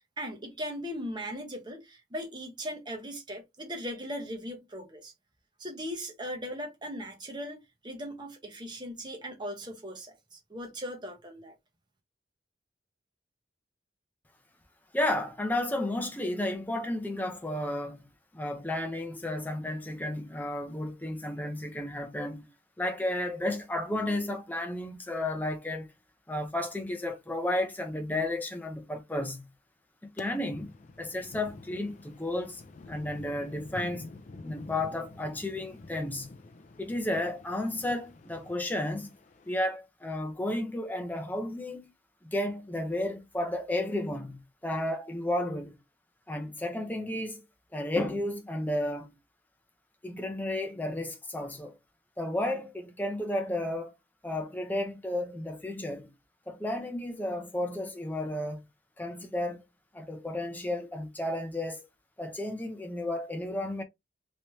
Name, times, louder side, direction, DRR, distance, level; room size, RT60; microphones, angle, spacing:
voice 1, 0.2-5.1 5.6-11.5, equal, 25° right, 1.0 m, -39 dB
voice 2, 14.9-18.1 18.3-22.5 22.8-25.9 26.3-29.5 30.0-32.6 32.9-34.0 34.4-36.3 36.8-39.1 39.5-41.9 42.2-45.8 46.3-47.4 47.7-49.1 50.0-51.7 52.2-53.9 54.2-56.1 56.5-58.6 59.0-59.6 59.9-61.8 62.2-63.8, left 1 dB, 10° left, 0.7 m, -32 dB
sound 1, 30.2-39.5, left 3 dB, 40° left, 0.4 m, -48 dB
3.2 x 3.1 x 2.7 m
head